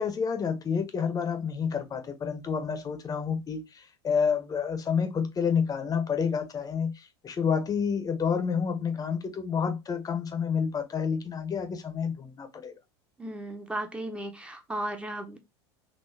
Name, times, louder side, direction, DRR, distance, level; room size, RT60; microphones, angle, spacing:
voice 1, 0.0-12.8, left 6 dB, 25° left, 0.9 m, -29 dB
voice 2, 13.2-15.4, right 1 dB, 10° right, 1.0 m, -35 dB
3.8 x 2.7 x 2.7 m
hypercardioid pair, 85°, 14 cm